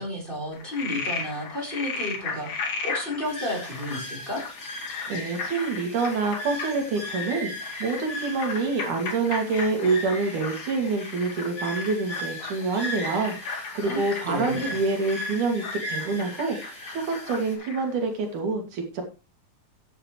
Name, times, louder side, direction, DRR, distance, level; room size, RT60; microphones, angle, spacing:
voice 1, 0.0-4.4 13.7-14.8, left 1 dB, 15° left, 0 dB, 4.4 m, -32 dB
Frog, 0.5-18.0, left 4 dB, 70° left, 3.8 m, -36 dB
sound 1, 3.2-17.5, left 1 dB, 40° left, 6.0 m, -38 dB
voice 2, 5.1-19.0, right 4 dB, 85° right, 3 dB, 4.1 m, -27 dB
14.5 x 9.7 x 3.2 m, 0.29 s
omnidirectional pair, 3.4 m